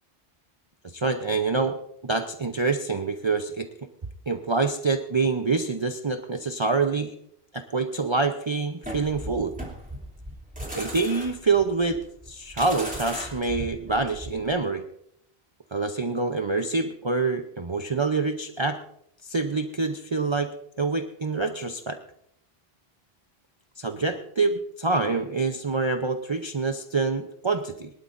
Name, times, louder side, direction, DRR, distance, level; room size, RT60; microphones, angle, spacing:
voice 1, 0.9-3.7 4.3-7.2 7.5-9.5 10.7-12.0 12.3-14.8 15.7-18.8 19.2-20.5 20.8-22.0 23.8-27.9, right 4 dB, 30° right, 5 dB, 0.7 m, -26 dB
sound 1, 8.8-14.5, equal, 5° right, 2.9 m, -37 dB
23.0 x 12.5 x 2.6 m, 0.72 s
omnidirectional pair, 1.0 m